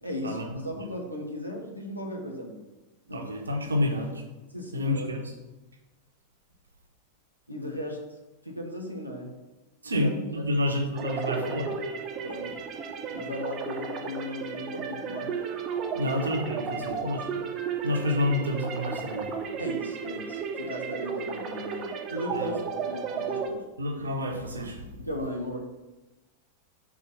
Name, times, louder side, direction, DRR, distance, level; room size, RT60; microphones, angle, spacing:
voice 1, 0.0-2.7 3.1-3.3 4.5-5.1 7.5-8.0 8.4-9.3 9.9-10.1 10.6-10.8 11.1-11.4 12.2-12.6 13.1-15.3 16.0-16.2 16.8-17.1 19.6-23.6 25.0-25.6, left 1 dB, 90° left, 0 dB, 1.3 m, -36 dB
voice 2, 3.1-4.2 4.7-5.2 9.8-11.7 15.9-17.4 17.8-19.3 22.3-22.5 23.8-24.9, left 1 dB, 75° right, 2 dB, 1.1 m, -29 dB
sound 1, 11.0-23.5, right 6 dB, 35° right, 0.8 m, -34 dB
5.0 x 4.4 x 5.7 m, 1.1 s
figure-of-eight pair, 90°, 0 cm